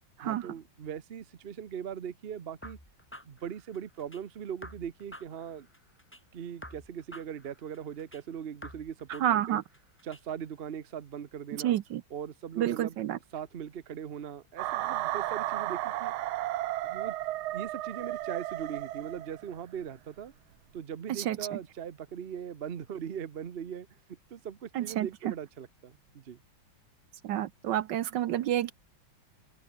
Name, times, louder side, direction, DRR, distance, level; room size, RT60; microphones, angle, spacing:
voice 1, 0.2-2.8 3.2-5.7 6.3-9.6 10.0-11.8 12.1-13.0 13.3-16.1 16.8-17.2 17.5-20.3 20.7-26.4, right 8 dB, 50° right, 0.7 m, -40 dB
sound 1, 2.6-4.2 4.6-6.2 6.6-8.2 8.6-10.2, equal, 5° left, 6.8 m, -49 dB
voice 2, 9.2-9.6 11.6-12.0 12.6-13.2 21.1-21.6 24.7-25.1 27.2-28.7, right 12 dB, 65° right, 1.2 m, -29 dB
sound 2, 14.6-19.6, right 15 dB, 90° right, 1.6 m, -33 dB
open air
omnidirectional pair, 2.2 m